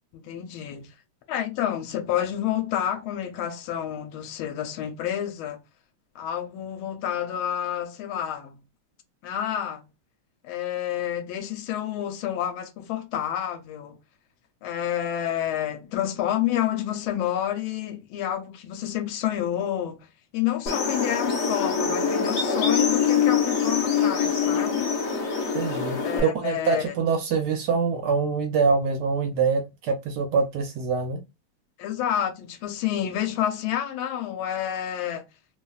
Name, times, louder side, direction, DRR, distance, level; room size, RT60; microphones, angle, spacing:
voice 1, 0.1-0.9 1.3-5.6 6.1-8.6 9.2-9.8 10.4-14.0 14.6-25.0 26.0-26.9 31.8-35.2, left 11 dB, 85° left, 1.4 m, -29 dB
sound 1, 20.7-26.2, left 6 dB, 65° left, 0.7 m, -24 dB
voice 2, 25.5-31.2, right 5 dB, 75° right, 1.0 m, -25 dB
3.2 x 2.3 x 2.2 m
omnidirectional pair, 2.3 m